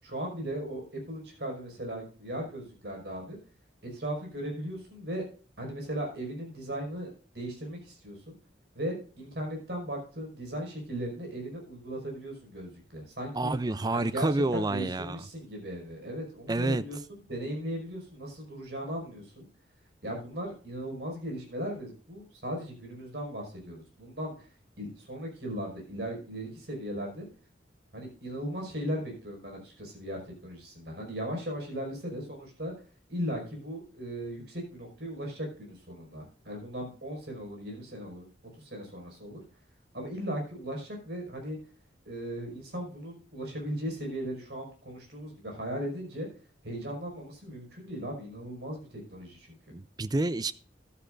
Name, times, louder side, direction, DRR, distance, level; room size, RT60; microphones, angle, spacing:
voice 1, 0.0-3.4 3.8-5.2 5.6-8.3 8.8-13.5 13.9-17.0 17.3-19.5 20.0-24.5 24.8-27.3 27.9-32.7 33.1-38.3 38.6-39.4 39.9-41.6 42.1-46.3 46.6-49.6, equal, 60° right, 5.4 m, -37 dB
voice 2, 13.3-15.2 16.5-16.8 49.7-50.5, right 2 dB, 20° right, 0.4 m, -28 dB
14.5 x 11.5 x 2.5 m
head